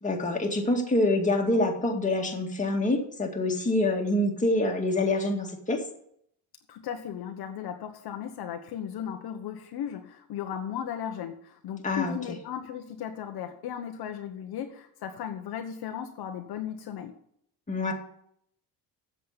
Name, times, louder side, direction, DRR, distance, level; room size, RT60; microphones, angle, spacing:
voice 1, 0.0-5.8 11.8-12.2 17.7-17.9, left 2 dB, 15° left, 1 dB, 2.2 m, -26 dB
voice 2, 6.7-17.1, left 9 dB, 60° left, 5 dB, 1.2 m, -36 dB
7.9 x 7.5 x 8.3 m, 0.70 s
cardioid pair, 95°, 43 cm